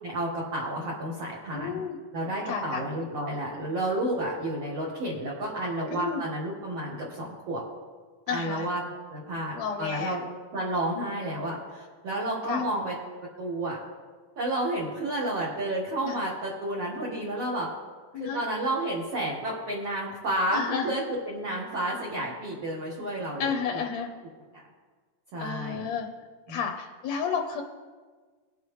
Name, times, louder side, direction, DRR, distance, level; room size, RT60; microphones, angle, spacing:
voice 1, 0.0-1.8 2.1-7.6 8.3-8.8 9.1-10.2 10.5-12.9 13.4-13.8 14.4-17.7 18.2-23.8 25.3-25.8 26.5-26.6, right 1 dB, 55° right, -5 dB, 2.2 m, -31 dB
voice 2, 1.5-2.0 2.4-2.8 5.9-6.2 8.3-8.7 9.5-10.2 12.5-12.6 16.0-16.2 18.1-18.4 20.5-21.0 23.4-24.1 25.4-26.1 26.5-27.6, left 6 dB, 70° left, 3 dB, 1.8 m, -31 dB
20.5 x 6.9 x 3.2 m, 1.4 s
omnidirectional pair, 3.9 m